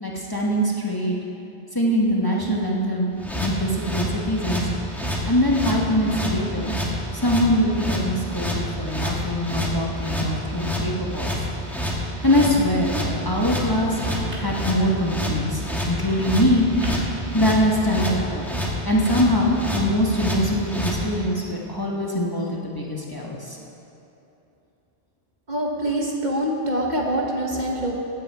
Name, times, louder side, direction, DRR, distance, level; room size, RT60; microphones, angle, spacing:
voice 1, 0.0-1.2 1.7-3.1 3.4-4.7 5.2-6.7 7.2-11.3 12.2-14.0 14.4-16.6 17.3-18.4 18.8-23.6, equal, 20° left, -3 dB, 1.2 m, -23 dB
sound 1, 3.2-21.0, equal, ahead, 1.3 m, -28 dB
sound 2, 13.8-14.7 15.8-17.2, right 1 dB, 85° right, 2.3 m, -35 dB
voice 2, 25.5-28.0, right 1 dB, 45° right, -1 dB, 1.2 m, -25 dB
15.5 x 8.9 x 4.6 m, 2.9 s
omnidirectional pair, 1.2 m